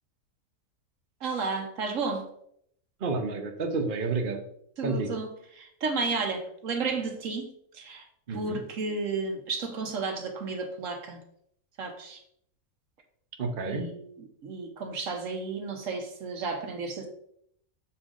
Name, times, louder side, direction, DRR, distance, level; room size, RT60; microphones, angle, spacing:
voice 1, 1.2-2.3 4.8-5.3 5.6-7.5 7.7-11.2 11.8-12.2 13.7-17.1, right 4 dB, 65° right, 5 dB, 1.2 m, -33 dB
voice 2, 3.0-4.4 4.8-5.1 8.3-8.6 13.4-13.9, right 3 dB, 45° right, 4 dB, 0.8 m, -30 dB
6.8 x 4.4 x 3.7 m, 0.69 s
omnidirectional pair, 1.6 m